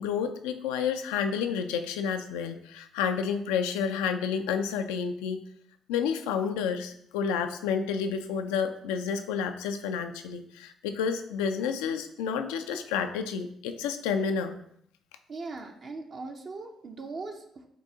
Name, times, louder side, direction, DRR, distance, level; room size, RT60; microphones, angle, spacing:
voice 1, 0.0-5.4 5.9-14.5, left 6 dB, 85° left, 8 dB, 0.3 m, -30 dB
voice 2, 15.3-17.7, right 3 dB, 55° right, 2 dB, 0.5 m, -39 dB
7.0 x 2.6 x 2.7 m, 0.71 s
hypercardioid pair, 50°, 0 cm